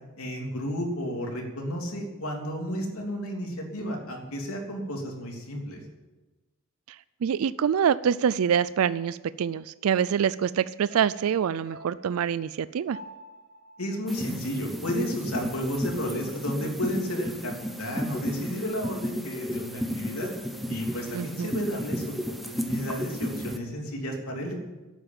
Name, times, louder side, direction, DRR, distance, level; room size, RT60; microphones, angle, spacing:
voice 1, 0.2-5.8 13.8-20.3 20.7-22.2 22.4-24.5, equal, 75° left, 1 dB, 3.1 m, -32 dB
voice 2, 7.2-13.0 21.1-21.6, right 8 dB, 75° right, 17 dB, 0.4 m, -25 dB
sound 1, 10.9-15.3 15.6-15.7, equal, 50° right, 2.9 m, -49 dB
sound 2, 14.1-23.6, equal, ahead, 1.0 m, -33 dB
11.5 x 8.8 x 9.0 m, 1.1 s
head